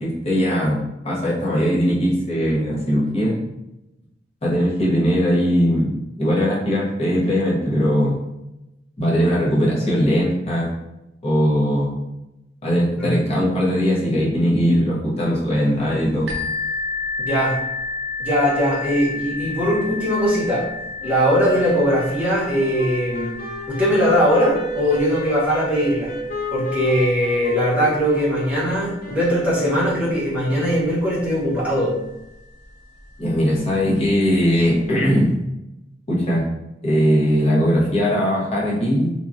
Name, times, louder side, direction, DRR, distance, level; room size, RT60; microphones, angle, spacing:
voice 1, 0.0-3.4 4.4-5.9 6.2-8.2 9.0-10.7 11.2-12.0 12.6-16.3 33.2-35.3 36.1-36.5 36.8-39.1, equal, 35° left, -5 dB, 0.8 m, -20 dB
sound 1, 16.3-31.8 32.6-32.7 33.2-33.3, left 3 dB, 60° right, 0.5 m, -33 dB
voice 2, 17.2-17.6 18.2-20.6 21.0-23.3 23.7-26.1 26.5-32.0, equal, 5° right, -9 dB, 0.9 m, -20 dB
Wind instrument woodwind instrument, 21.0-30.5, left 1 dB, 50° left, 0.5 m, -33 dB
2.9 x 2.3 x 2.5 m, 0.92 s
head